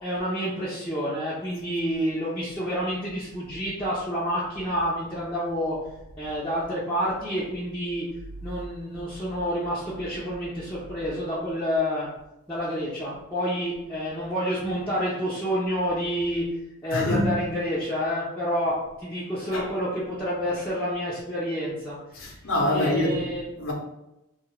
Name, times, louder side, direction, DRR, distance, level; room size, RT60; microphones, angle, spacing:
voice 1, 0.0-5.8 6.2-8.1 8.4-12.1 12.5-16.5 16.8-22.3 22.7-23.6, equal, 5° left, 0.7 m, -29 dB
voice 2, 16.9-17.4 19.5-19.7 22.2-23.3 23.6-23.7, left 1 dB, 75° left, 0.8 m, -25 dB
3.3 x 2.4 x 3.3 m
head